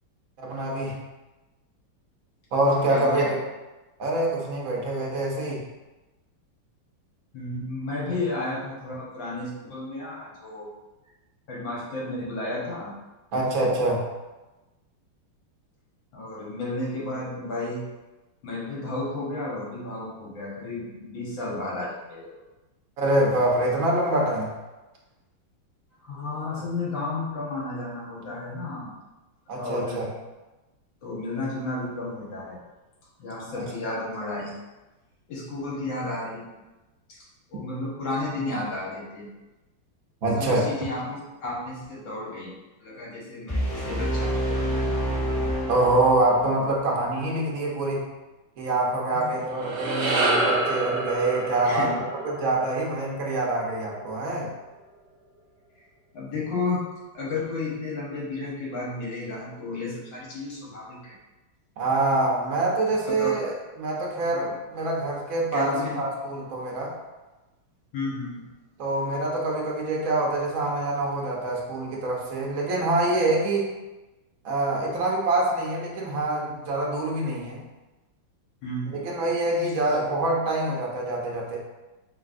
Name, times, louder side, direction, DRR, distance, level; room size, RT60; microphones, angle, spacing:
voice 1, 0.4-1.0 2.5-3.4 4.0-5.7 13.3-14.1 23.0-24.5 29.5-30.1 40.2-40.6 45.7-48.0 48.6-54.5 61.8-66.9 68.8-73.7 74.4-77.6 78.9-81.6, right 2 dB, 85° right, -2 dB, 0.7 m, -25 dB
voice 2, 2.9-3.3 7.3-10.7 11.5-12.9 16.1-17.9 18.4-22.3 26.0-28.9 29.6-30.0 31.0-32.6 33.2-34.6 35.3-36.4 37.1-37.2 37.5-39.3 40.3-42.5 42.8-44.8 49.1-49.4 51.6-52.0 56.1-56.8 57.1-61.1 63.1-63.3 64.3-64.4 65.5-66.1 67.9-68.5 78.6-79.0, left 2 dB, 65° left, -5 dB, 1.7 m, -32 dB
sound 1, 43.5-46.5, equal, 20° left, 0.6 m, -27 dB
sound 2, 49.4-53.9, right 2 dB, 60° right, 1.1 m, -28 dB
4.0 x 3.6 x 2.5 m, 1.1 s
omnidirectional pair, 2.4 m